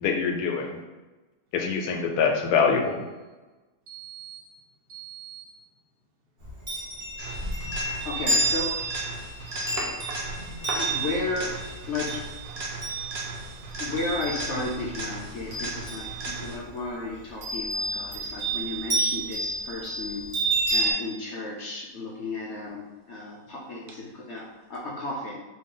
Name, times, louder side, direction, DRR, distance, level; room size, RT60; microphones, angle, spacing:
voice 1, 0.0-0.8 1.5-2.9, left 5 dB, 80° left, 2 dB, 1.1 m, -24 dB
voice 2, 3.9-4.5 4.9-5.6 9.8-10.2 10.7-10.9, right 3 dB, 80° right, -1 dB, 1.3 m, -37 dB
Chime, 6.4-14.9 15.2-16.6 17.4-20.9, right 2 dB, 40° right, 0.9 m, -30 dB
sound 1, 7.2-16.8 24.7-24.8, right 2 dB, 60° right, 0.5 m, -37 dB
voice 3, 7.8-8.8 10.8-11.5 11.9-12.2 13.8-20.2 20.7-25.4, left 3 dB, 65° left, -4 dB, 0.7 m, -34 dB
3.0 x 2.6 x 3.7 m, 1.2 s
omnidirectional pair, 1.6 m